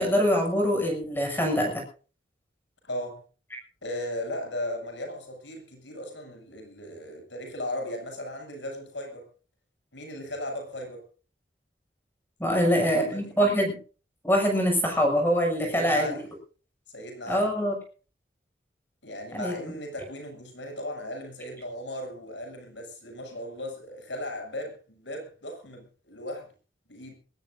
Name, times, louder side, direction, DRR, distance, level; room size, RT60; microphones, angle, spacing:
voice 1, 0.0-1.8 12.4-13.8 14.2-16.1 17.3-17.8 19.3-19.5, equal, 10° left, 6.8 m, -24 dB
voice 2, 2.8-3.2 3.8-9.3 9.9-11.0 12.5-13.4 15.6-16.3 16.9-17.5 19.0-26.5 26.9-27.1, left 1 dB, 85° left, 7.3 m, -37 dB
22.0 x 18.5 x 2.6 m
head